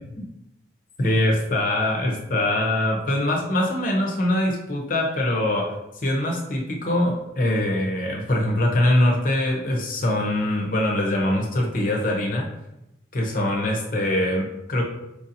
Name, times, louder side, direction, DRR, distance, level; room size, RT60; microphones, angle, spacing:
voice 1, 1.0-5.7 6.0-12.5 13.1-14.8, left 1 dB, 45° left, 0 dB, 0.7 m, -23 dB
4.7 x 2.7 x 2.6 m, 0.90 s
head